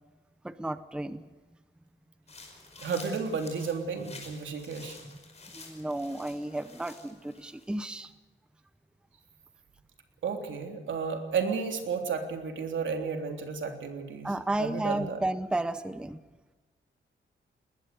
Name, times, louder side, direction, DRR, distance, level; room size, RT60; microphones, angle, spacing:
voice 1, 0.4-1.2 4.0-4.1 5.0-5.1 5.5-8.1 14.2-16.2, right 1 dB, 5° right, 12 dB, 0.7 m, -33 dB
sound 1, 2.3-7.7, left 3 dB, 35° left, 5.1 m, -50 dB
voice 2, 2.8-5.0 10.2-14.3 14.6-15.2, right 5 dB, 75° right, 4 dB, 3.5 m, -32 dB
21.0 x 20.5 x 6.9 m, 1.2 s
wide cardioid pair, 165°, 20 cm